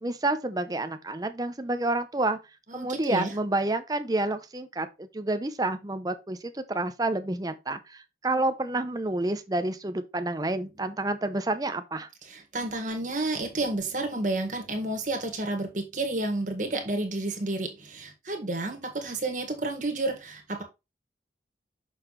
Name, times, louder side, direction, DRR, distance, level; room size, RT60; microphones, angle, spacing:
voice 1, 0.0-2.4 2.7-12.1, right 2 dB, 20° right, 0.6 m, -29 dB
voice 2, 2.7-3.3 12.3-20.6, right 2 dB, 45° right, 1.8 m, -31 dB
6.5 x 5.8 x 3.1 m
head